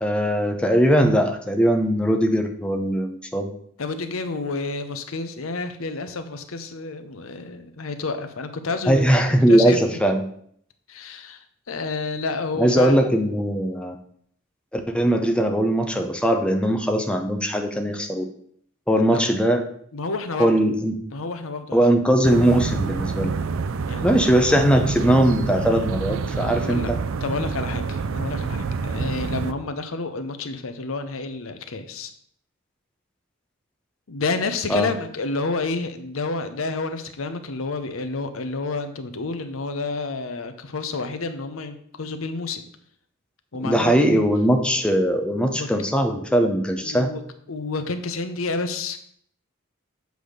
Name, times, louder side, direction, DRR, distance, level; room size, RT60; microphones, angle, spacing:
voice 1, 0.0-3.5 8.9-10.2 12.6-14.0 14.7-18.2 18.9-19.7 20.4-20.9 21.7-23.4 24.0-27.0 34.7-34.9 43.6-47.1, equal, 5° left, 4 dB, 0.6 m, -20 dB
voice 2, 3.8-9.0 9.5-9.9 10.9-12.9 19.1-19.2 19.9-20.5 21.1-21.8 23.8-24.1 26.5-26.9 27.2-32.1 34.1-42.6 43.5-44.0 45.4-45.7 46.8-47.2 47.5-49.0, left 3 dB, 80° left, 9 dB, 0.8 m, -29 dB
sound 1, 22.2-29.5, right 4 dB, 70° right, 0.5 m, -27 dB
7.8 x 3.5 x 6.4 m, 0.64 s
head